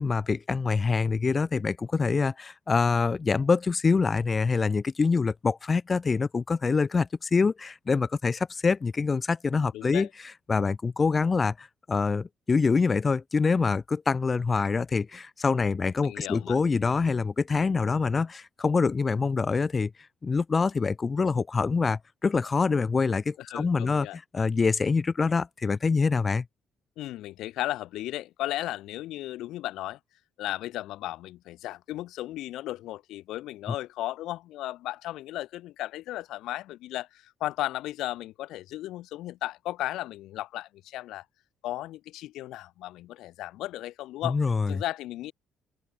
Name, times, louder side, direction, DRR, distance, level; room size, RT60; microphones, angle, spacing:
voice 1, 0.0-10.1 10.5-19.9 20.2-24.1 24.3-26.4 44.2-44.7, left 4 dB, 20° left, 5.8 m, -25 dB
voice 2, 9.7-10.1 16.0-16.6 23.4-24.2 27.0-30.0 30.4-41.2 41.6-44.4 44.7-45.3, left 15 dB, 80° left, 5.2 m, -35 dB
open air
cardioid pair, 160°, 0 cm